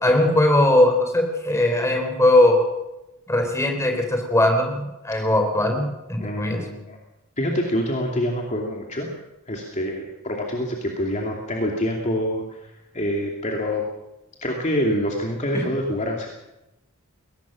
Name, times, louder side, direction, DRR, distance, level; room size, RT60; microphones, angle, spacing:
voice 1, 0.0-2.6 3.3-6.6 15.5-15.6, left 1 dB, 15° left, 3 dB, 4.1 m, -19 dB
voice 2, 6.2-7.0 7.4-9.1 9.5-12.7 12.9-13.9 14.4-16.3, equal, 35° left, 0 dB, 2.6 m, -26 dB
21.5 x 19.0 x 6.3 m, 0.95 s
head